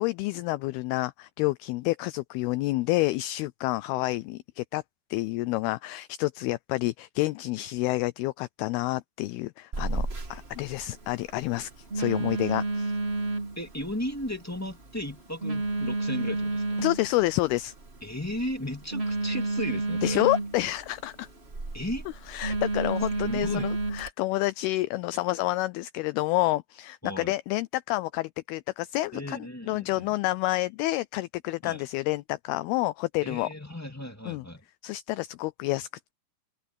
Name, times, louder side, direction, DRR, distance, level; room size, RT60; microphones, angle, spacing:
voice 1, 0.0-4.8 5.1-12.9 16.8-17.7 20.0-21.3 22.3-29.4 29.6-33.5 34.3-34.4 34.8-36.1, left 19 dB, 80° left, 2.3 m, -29 dB
Telephone, 9.7-24.1, right 2 dB, 35° right, 1.0 m, -32 dB
voice 2, 13.5-16.8 18.0-20.2 21.7-22.0 23.2-23.7 27.0-27.3 29.1-30.1 31.6-31.8 33.2-34.6, left 1 dB, 5° left, 1.2 m, -35 dB
open air
omnidirectional pair, 4.8 m